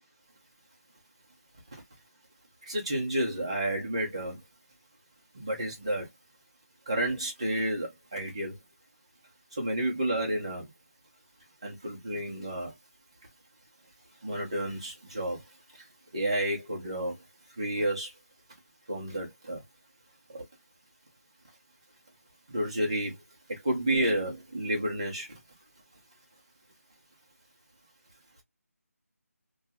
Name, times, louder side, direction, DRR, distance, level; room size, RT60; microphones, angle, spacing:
voice 1, 2.7-4.4 5.3-6.1 6.9-8.5 9.6-10.7 11.6-12.7 14.2-15.4 16.1-17.2 17.6-18.1 18.9-19.6 22.5-23.2 23.5-25.3, right 1 dB, 20° right, 0.8 m, -30 dB
2.7 x 2.3 x 2.6 m
figure-of-eight pair, 180°, 9 cm